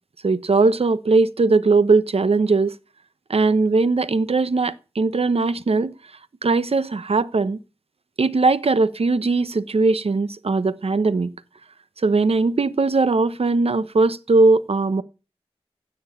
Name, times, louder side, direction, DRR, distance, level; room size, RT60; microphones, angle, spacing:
voice 1, 0.2-2.8 3.3-5.9 6.4-7.6 8.2-11.3 12.0-15.0, right 3 dB, 70° right, 1.1 m, -19 dB
16.0 x 6.5 x 8.7 m
cardioid pair, 45°, 11 cm